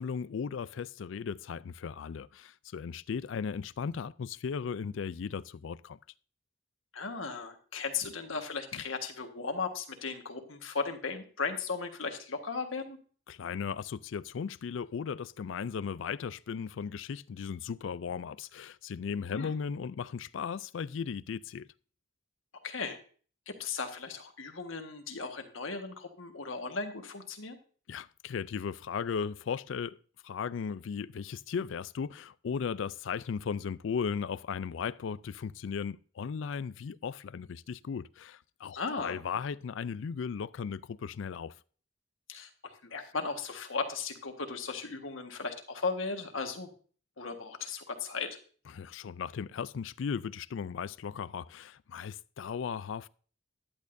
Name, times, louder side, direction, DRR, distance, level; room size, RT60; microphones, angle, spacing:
voice 1, 0.0-6.0 8.7-8.8 13.3-21.7 27.9-30.0 30.2-41.5 48.7-53.1, left 6 dB, 70° left, 0.4 m, -36 dB
voice 2, 6.9-13.0 19.3-19.5 22.6-23.0 23.5-27.6 38.7-39.2 42.3-46.7 47.2-48.3, left 4 dB, 85° left, 1.5 m, -36 dB
14.5 x 10.5 x 2.6 m
head